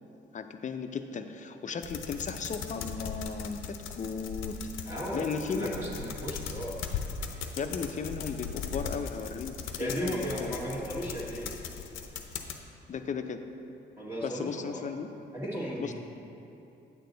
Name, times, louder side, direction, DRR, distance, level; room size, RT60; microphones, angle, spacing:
voice 1, 0.3-5.7 7.6-10.7 12.9-13.4 14.2-15.1 15.8-15.9, left 5 dB, 40° left, 7 dB, 0.5 m, -36 dB
sound 1, 1.8-12.6, left 6 dB, 85° left, 0.7 m, -39 dB
voice 2, 4.9-6.8 9.8-11.5 14.0-14.8 15.3-15.9, equal, 10° right, -8 dB, 1.3 m, -35 dB
8.9 x 6.6 x 3.9 m, 2.9 s
cardioid pair, 90°, 20 cm